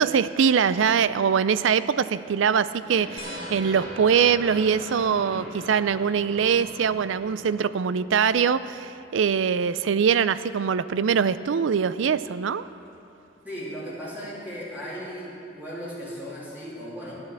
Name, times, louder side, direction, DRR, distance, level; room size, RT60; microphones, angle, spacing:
voice 1, 0.0-12.6, right 7 dB, 80° right, 15 dB, 0.4 m, -23 dB
sound 1, 2.7-7.9, equal, 25° right, 3.9 m, -40 dB
sound 2, 3.2-8.2 9.8-9.9 11.5-11.6, left 1 dB, 30° left, 2.9 m, -46 dB
voice 2, 13.4-17.2, equal, 10° right, -9 dB, 3.2 m, -36 dB
12.0 x 9.0 x 7.4 m, 2.7 s
head